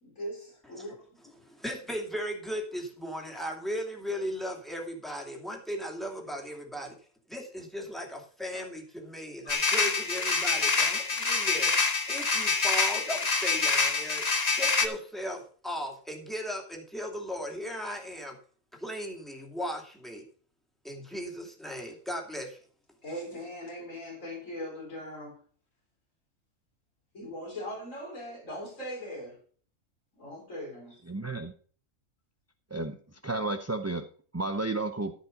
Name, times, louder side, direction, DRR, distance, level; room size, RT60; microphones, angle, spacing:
voice 1, 0.0-0.9 8.5-8.6 9.4-9.6 23.0-25.4 27.1-29.4 30.2-31.0, equal, 75° left, 4.5 m, -40 dB
voice 2, 1.4-6.9 7.3-11.7 12.1-18.4 18.8-20.2 20.8-22.6, equal, ahead, 2.7 m, -37 dB
sound 1, 9.5-14.9, left 4 dB, 35° left, 1.0 m, -26 dB
voice 3, 31.1-31.5 32.7-33.0 33.2-34.1 34.3-35.1, right 2 dB, 15° right, 0.6 m, -32 dB
14.0 x 5.5 x 5.3 m
omnidirectional pair, 1.3 m